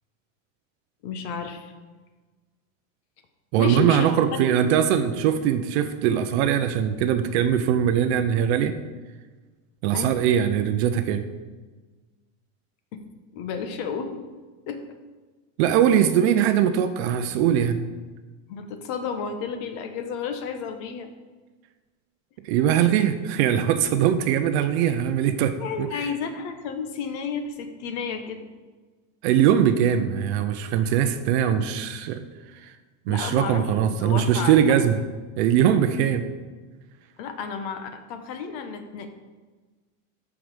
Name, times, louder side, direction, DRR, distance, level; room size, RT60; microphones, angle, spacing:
voice 1, 1.0-1.7 3.6-4.1 4.4-4.5 9.9-10.1 12.9-13.0 13.3-14.2 14.7-14.8 18.5-21.1 25.5-28.5 33.1-34.8 37.2-39.1, left 6 dB, 55° left, 7 dB, 1.2 m, -32 dB
voice 2, 3.5-8.7 9.8-11.3 15.6-17.8 22.4-26.1 29.2-32.8 33.1-35.0 35.4-36.3, right 9 dB, 50° right, 9 dB, 0.7 m, -21 dB
13.5 x 4.9 x 5.1 m, 1.3 s
supercardioid pair, 165°, 41 cm